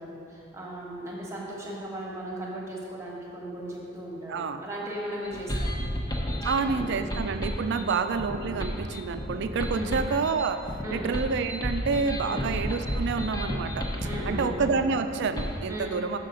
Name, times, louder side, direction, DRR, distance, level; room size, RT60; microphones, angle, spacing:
voice 1, 0.0-5.8 6.4-6.9 7.7-7.9 9.7-9.9 10.8-11.0 12.3-12.4 14.0-14.5 15.7-15.9, right 1 dB, 15° right, -3 dB, 1.2 m, -37 dB
voice 2, 4.3-4.6 6.4-10.6 10.9-13.9 14.3-16.2, right 5 dB, 55° right, 9 dB, 0.4 m, -28 dB
sound 1, 5.2-15.6, equal, 20° left, 0.7 m, -32 dB
6.3 x 5.7 x 5.2 m, 2.8 s
head